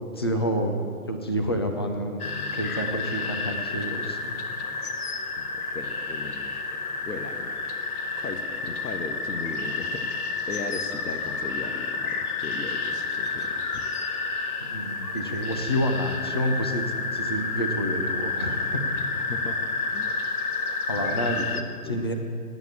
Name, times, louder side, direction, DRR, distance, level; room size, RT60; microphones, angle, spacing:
voice 1, 0.1-0.8 1.1-4.3 14.7-16.8 17.1-19.0 20.9-21.4 21.9-22.1, equal, 20° left, 3 dB, 0.4 m, -28 dB
sound 1, 2.2-21.6, left 3 dB, 65° left, 1.2 m, -30 dB
voice 2, 5.7-6.5 7.0-7.5 8.2-13.8 19.1-19.6 19.9-20.1 21.0-22.0, left 3 dB, 85° left, 5 dB, 1.3 m, -37 dB
9.6 x 8.6 x 8.5 m, 2.2 s
figure-of-eight pair, 125°, 47 cm